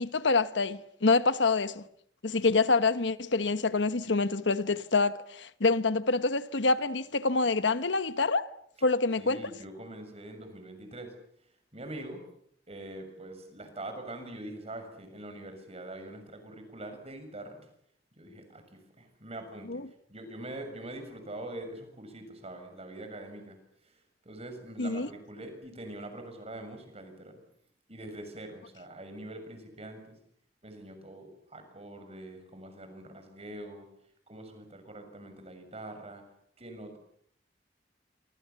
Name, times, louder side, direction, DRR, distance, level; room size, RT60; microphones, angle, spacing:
voice 1, 0.0-1.8 2.2-8.5 8.8-9.4 19.7-19.8 24.8-25.1, left 3 dB, 80° left, 1.2 m, -26 dB
voice 2, 9.2-11.2 11.7-12.2 12.7-17.6 18.1-19.8 20.1-23.6 23.8-27.4 27.9-30.2 30.6-33.9 34.3-36.2 36.6-37.0, right 1 dB, 35° right, 6.9 m, -44 dB
28.0 x 26.0 x 7.1 m
head